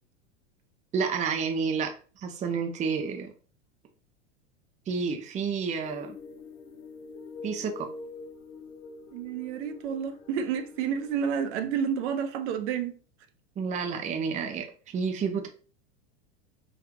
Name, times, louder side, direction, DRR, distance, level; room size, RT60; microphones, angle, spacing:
voice 1, 0.9-1.9 2.2-3.3 4.9-6.2 7.4-7.9 13.6-14.7 14.9-15.5, right 5 dB, 20° right, 0.5 m, -30 dB
sound 1, 5.8-11.7, left 3 dB, 40° left, 0.6 m, -45 dB
voice 2, 9.1-13.0, right 7 dB, 65° right, 0.7 m, -30 dB
3.0 x 2.4 x 3.5 m
hypercardioid pair, 105°, 37 cm